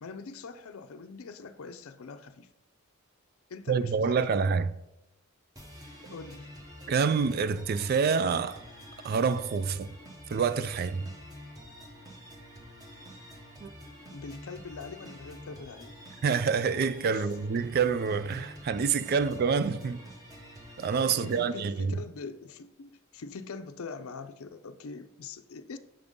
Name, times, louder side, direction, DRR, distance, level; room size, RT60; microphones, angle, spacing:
voice 1, 0.0-2.5 3.5-4.2 6.1-6.5 14.1-16.0 17.1-17.3 21.2-25.8, left 4 dB, 75° left, 0.5 m, -43 dB
voice 2, 3.7-4.7 6.9-8.6 9.0-9.9 10.3-11.1 13.6-13.7 16.2-20.0 20.8-22.0, right 5 dB, 45° right, 0.3 m, -27 dB
sound 1, 5.6-21.5, equal, 15° right, 1.1 m, -48 dB
6.9 x 3.6 x 5.2 m
head